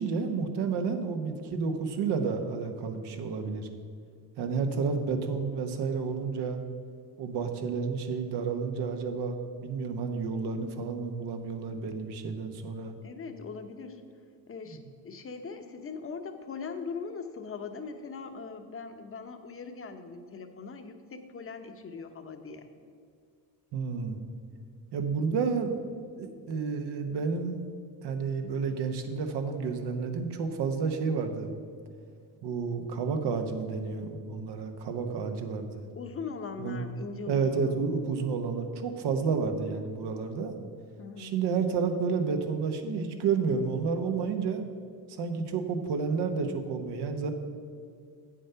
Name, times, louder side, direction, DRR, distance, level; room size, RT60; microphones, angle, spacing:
voice 1, 0.0-3.7 4.4-6.6 7.2-12.9 14.7-14.8 23.7-24.2 24.9-25.8 26.2-27.6 28.0-31.5 32.4-35.9 36.6-36.8 37.3-40.5 41.2-44.7 45.1-47.3, right 5 dB, 70° right, 6 dB, 1.1 m, -30 dB
voice 2, 13.0-14.0 14.5-22.7 36.0-37.8 41.0-41.4, left 5 dB, 30° left, 7 dB, 0.9 m, -40 dB
8.2 x 7.4 x 5.7 m, 2.2 s
cardioid pair, 105°, 42 cm